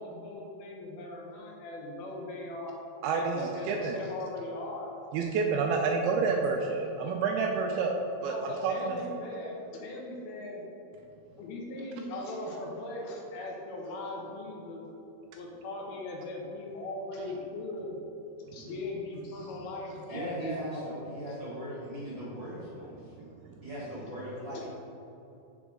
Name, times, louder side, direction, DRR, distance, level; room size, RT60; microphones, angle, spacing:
voice 1, 0.0-2.8 3.1-5.0 8.2-10.6 11.3-14.9 15.3-18.0 18.5-21.0 24.5-24.7, left 2 dB, 75° left, -1 dB, 2.6 m, -39 dB
voice 2, 3.0-4.0 5.1-7.9 8.2-9.0, right 4 dB, 80° right, 1 dB, 2.3 m, -29 dB
voice 3, 20.1-23.1 23.6-24.7, equal, 45° right, -12 dB, 1.5 m, -38 dB
8.1 x 6.0 x 3.6 m, 2.9 s
omnidirectional pair, 4.8 m